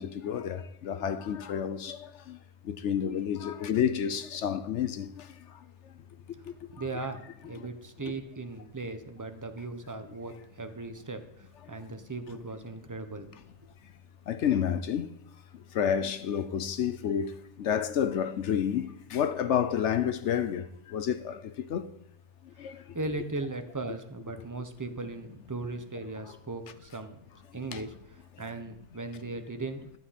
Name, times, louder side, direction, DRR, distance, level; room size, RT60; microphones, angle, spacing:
voice 1, 0.0-2.4 2.6-5.3 6.5-6.6 6.9-7.1 7.6-7.7 14.3-15.1 15.7-21.9 22.6-22.8 27.7-27.8, left 8 dB, 65° left, 0.9 m, -30 dB
voice 2, 6.7-13.3 22.6-27.2 27.5-30.0, right 3 dB, 15° right, 0.8 m, -38 dB
12.0 x 9.5 x 4.3 m
omnidirectional pair, 1.4 m